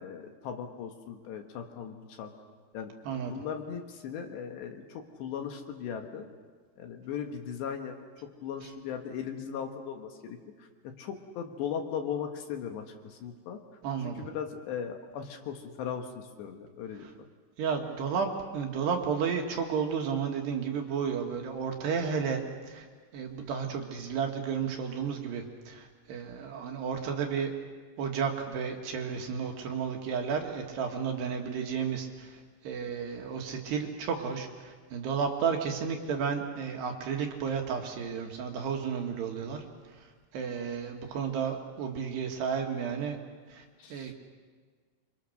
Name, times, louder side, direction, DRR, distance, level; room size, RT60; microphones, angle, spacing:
voice 1, 0.0-2.3 2.7-2.9 3.3-6.3 6.8-7.9 8.4-13.6 14.0-17.1 43.8-44.1, left 7 dB, 65° left, 4 dB, 3.2 m, -38 dB
voice 2, 13.8-14.2 17.6-18.3 18.5-22.9 23.1-27.5 28.0-32.4 32.6-39.6 40.3-43.2 43.5-43.6 43.9-44.1, right 6 dB, 65° right, 2 dB, 3.3 m, -32 dB
27.5 x 25.5 x 6.5 m, 1.5 s
omnidirectional pair, 5.9 m